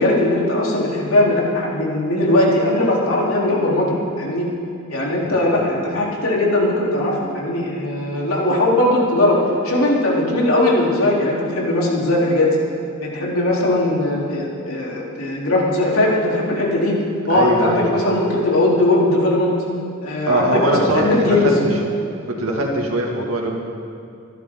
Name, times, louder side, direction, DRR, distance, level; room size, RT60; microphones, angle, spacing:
voice 1, 0.0-4.5 4.9-12.6 13.0-17.0 17.3-19.5 20.0-21.6, left 1 dB, 90° left, -4 dB, 3.6 m, -19 dB
voice 2, 17.3-17.8 20.3-21.0 21.3-21.8 22.3-23.6, right 1 dB, 80° right, 0 dB, 2.3 m, -21 dB
26.5 x 11.5 x 3.9 m, 2.5 s
head